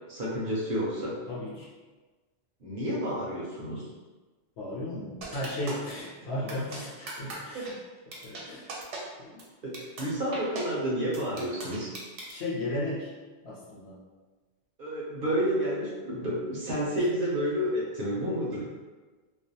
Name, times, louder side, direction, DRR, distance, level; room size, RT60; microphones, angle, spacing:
voice 1, 0.1-1.2 2.6-3.8 7.5-7.6 9.6-11.9 14.8-18.6, equal, 60° right, -6 dB, 0.6 m, -30 dB
voice 2, 1.3-1.7 4.6-7.7 8.1-8.7 9.2-9.3 10.0-10.1 12.3-13.1 13.4-14.0 17.0-17.1 18.6-18.7, left 1 dB, 65° left, -5 dB, 0.8 m, -35 dB
sound 1, 5.2-5.9 6.5-6.8 7.1-7.3 7.6-7.7 8.1-8.4 8.7-9.0 9.4-9.5 9.7-10.0 10.3-10.6 11.1-12.3, right 3 dB, 85° right, 0.9 m, -38 dB
2.4 x 2.1 x 2.6 m, 1.3 s
omnidirectional pair, 1.2 m